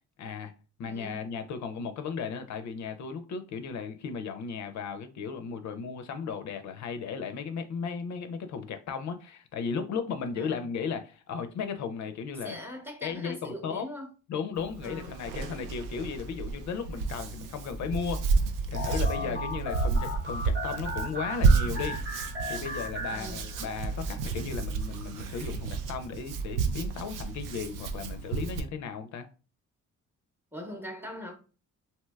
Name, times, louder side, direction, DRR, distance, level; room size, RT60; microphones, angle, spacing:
voice 1, 0.2-0.5 0.8-12.6 13.0-13.9 14.3-18.3 18.7-22.0 22.5-29.3, left 6 dB, 60° left, 0.4 m, -35 dB
voice 2, 0.9-1.4 10.4-10.7 12.4-14.1 14.8-15.2 19.2-19.4 23.1-23.4 30.5-31.3, equal, 5° right, 0.7 m, -41 dB
Hands, 14.6-28.6, right 4 dB, 80° right, 0.5 m, -31 dB
sound 1, 18.7-23.9, left 1 dB, 35° right, 0.8 m, -37 dB
3.2 x 2.8 x 2.2 m
cardioid pair, 105°, 32 cm